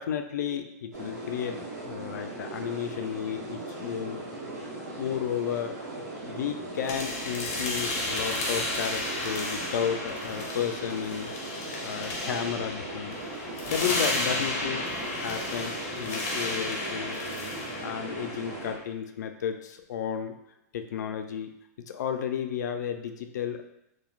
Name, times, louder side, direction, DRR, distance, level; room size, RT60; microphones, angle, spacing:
voice 1, 0.0-4.2 5.0-5.8 6.2-11.3 11.8-13.2 13.7-14.9 15.2-17.3 17.8-20.3 20.7-21.5 21.9-23.6, left 8 dB, 80° left, 7 dB, 0.3 m, -33 dB
sound 1, 0.9-18.7, right 2 dB, 85° right, 0.9 m, -39 dB
sound 2, 6.8-18.8, left 2 dB, 40° left, 0.7 m, -33 dB
3.1 x 2.2 x 2.3 m, 0.83 s
hypercardioid pair, 150°, 9 cm